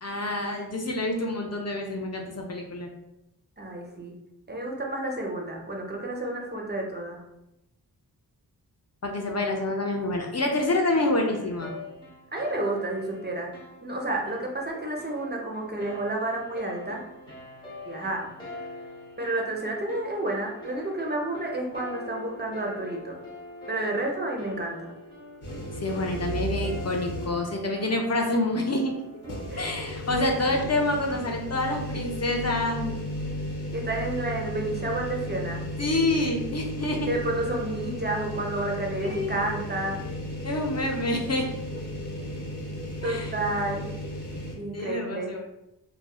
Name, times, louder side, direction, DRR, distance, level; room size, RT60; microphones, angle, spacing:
voice 1, 0.0-2.9 9.0-11.7 25.8-28.9 29.5-33.1 35.8-37.1 39.0-39.3 40.4-41.6 43.0-43.3 44.7-45.4, left 2 dB, 40° left, 1 dB, 0.5 m, -27 dB
voice 2, 3.6-4.1 4.5-7.2 12.3-13.5 13.8-17.0 17.9-18.3 19.2-23.2 23.7-24.9 29.5-29.7 33.7-35.6 37.1-40.0 41.7-41.8 43.0-43.9 44.6-45.3, right 2 dB, 25° right, 0 dB, 0.5 m, -30 dB
sound 1, 10.5-29.5, left 1 dB, 15° left, 0.8 m, -43 dB
sound 2, 25.4-27.6 28.0-28.1 29.2-44.5, equal, 70° left, 0.8 m, -34 dB
2.6 x 2.1 x 2.3 m, 0.88 s
cardioid pair, 45°, 41 cm